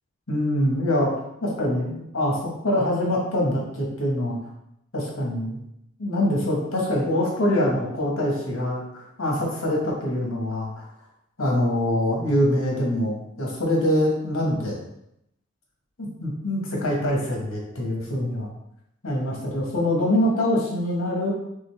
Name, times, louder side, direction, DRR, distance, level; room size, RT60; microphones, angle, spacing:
voice 1, 0.3-1.1 1.4-4.4 4.9-5.6 6.0-10.8 11.4-14.7 16.0-18.5 19.0-21.3, left 1 dB, 90° left, -2 dB, 1.3 m, -24 dB
3.9 x 3.5 x 3.4 m, 0.79 s
head